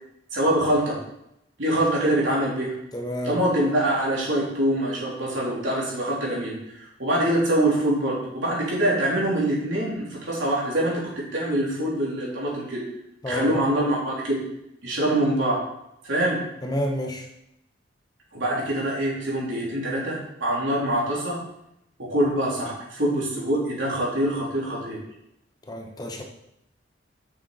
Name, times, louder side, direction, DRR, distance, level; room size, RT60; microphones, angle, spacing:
voice 1, 0.3-1.0 1.6-2.7 3.2-12.8 13.3-14.4 14.8-15.6 16.0-16.4 18.3-21.4 22.0-25.0, right 1 dB, 85° right, -5 dB, 3.2 m, -24 dB
voice 2, 2.9-3.4 13.2-13.6 16.6-17.3 25.7-26.2, equal, 20° left, 2 dB, 0.8 m, -29 dB
7.5 x 6.5 x 4.0 m, 0.82 s
head